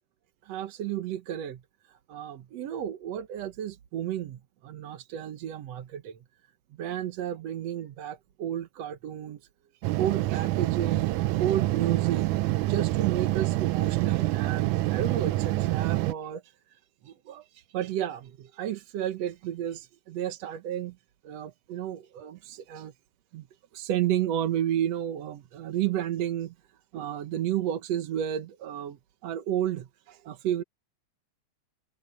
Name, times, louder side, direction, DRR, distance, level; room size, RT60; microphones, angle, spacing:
voice 1, 0.4-6.2 6.8-9.4 9.9-21.0 21.2-22.9 23.3-23.5 23.7-26.5 26.9-29.0 29.2-30.6, right 11 dB, 65° right, 2.1 m, -32 dB
sound 1, 9.8-16.1, right 17 dB, 90° right, 2.1 m, -26 dB
omnidirectional pair, 3.4 m